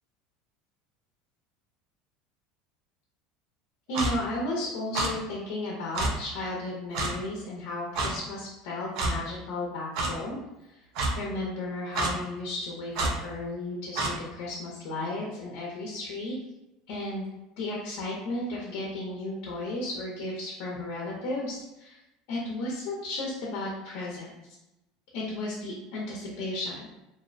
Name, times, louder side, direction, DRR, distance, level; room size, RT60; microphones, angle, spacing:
voice 1, 3.9-10.4 10.6-10.8 11.2-16.3 16.9-17.3 17.6-22.0 22.3-24.3 25.1-26.9, left 2 dB, 60° left, -3 dB, 0.6 m, -34 dB
Clock, 3.9-4.1 4.9-5.1 5.9-6.1 6.9-7.1 8.0-8.1 9.0-9.1 9.9-10.1 10.9-11.1 11.9-12.1 12.9-13.1 14.0-14.1, right 2 dB, 55° right, 0.4 m, -27 dB
2.6 x 2.0 x 2.5 m, 0.95 s
cardioid pair, 165°, 0 cm